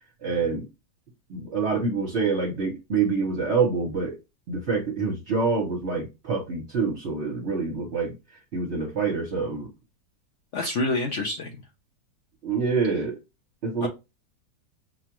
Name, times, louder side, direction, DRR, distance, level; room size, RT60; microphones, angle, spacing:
voice 1, 0.2-0.6 1.3-4.2 4.5-9.7 12.4-13.2 13.6-13.9, right 4 dB, 45° right, 0 dB, 1.2 m, -26 dB
voice 2, 10.5-11.6 13.8-13.9, left 2 dB, 55° left, 2 dB, 0.9 m, -27 dB
5.9 x 2.4 x 2.9 m, 0.25 s
omnidirectional pair, 1.7 m